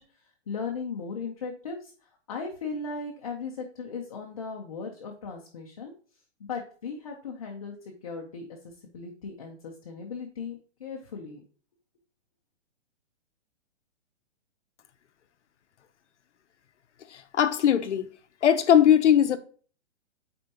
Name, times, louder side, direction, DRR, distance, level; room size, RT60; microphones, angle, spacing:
voice 1, 0.0-5.9 6.4-11.4, left 4 dB, 30° left, 0.6 m, -37 dB
voice 2, 17.1-18.1 18.4-19.4, left 9 dB, 75° left, 0.8 m, -20 dB
8.7 x 4.4 x 2.8 m
hypercardioid pair, 175°, 36 cm